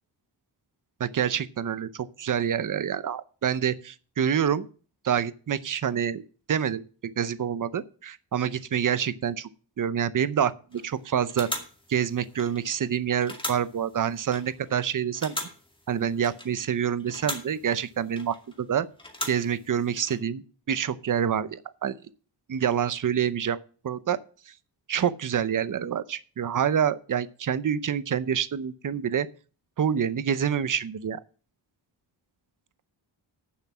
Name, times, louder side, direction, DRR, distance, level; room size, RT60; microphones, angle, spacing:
voice 1, 1.0-4.7 5.0-6.2 6.5-6.8 7.2-9.5 9.8-11.5 11.9-15.5 15.9-18.9 19.3-22.0 22.5-23.6 23.8-24.2 24.9-29.3 29.8-31.2, right 8 dB, 45° right, 0.7 m, -27 dB
sound 1, 10.7-10.9 11.3-12.9 13.2-14.8 15.1-16.7 17.0-18.6 19.0-20.2, left 1 dB, 10° left, 2.1 m, -39 dB
10.0 x 7.2 x 6.1 m
wide cardioid pair, 140°, 43 cm